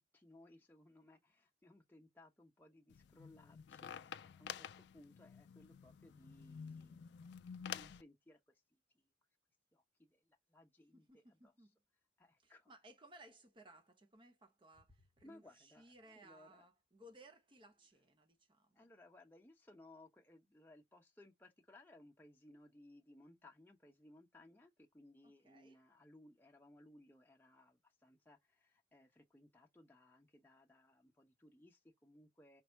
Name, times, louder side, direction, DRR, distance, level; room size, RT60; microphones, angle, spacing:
voice 1, 0.0-7.1 7.6-9.0 9.7-11.5 12.2-12.7 15.2-16.6 18.7-32.6, left 1 dB, 10° left, 0.8 m, -63 dB
sound 1, 2.9-8.0, left 8 dB, 70° left, 0.3 m, -50 dB
voice 2, 10.9-11.7 12.4-18.9 25.2-25.8, right 1 dB, 25° right, 0.8 m, -62 dB
5.2 x 2.0 x 4.5 m
head